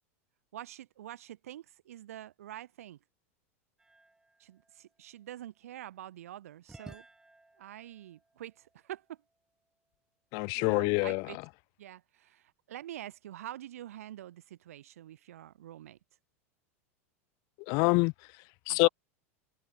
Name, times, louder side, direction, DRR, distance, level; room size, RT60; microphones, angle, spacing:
voice 1, 0.5-3.0 4.4-7.1 7.6-9.2 10.5-11.4 11.8-16.0 18.7-18.9, right 12 dB, 85° right, 5.4 m, -46 dB
sound 1, 3.8-5.9 6.7-9.6, right 2 dB, 10° right, 6.5 m, -57 dB
voice 2, 10.3-11.3 17.6-18.9, left 32 dB, 55° left, 1.1 m, -27 dB
hypercardioid pair, 110°, 8 cm